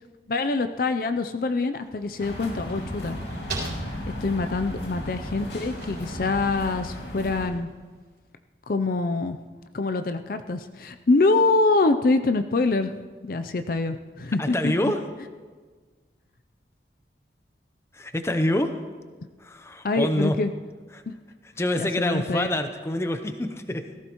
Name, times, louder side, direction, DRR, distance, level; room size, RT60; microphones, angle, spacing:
voice 1, 0.3-3.2 4.2-7.7 8.7-9.4 9.7-12.9 13.2-14.9 19.8-20.5 21.1-21.2 21.8-22.5, left 3 dB, 50° left, 8 dB, 0.5 m, -25 dB
sound 1, 1.8-7.9, right 2 dB, 65° right, 3.9 m, -40 dB
sound 2, 2.2-7.5, equal, 85° left, 2.2 m, -35 dB
voice 2, 14.4-15.0 17.9-18.7 19.4-20.4 20.9-21.0 21.6-23.8, left 1 dB, 15° left, 8 dB, 0.7 m, -26 dB
17.0 x 15.0 x 3.0 m, 1.5 s
head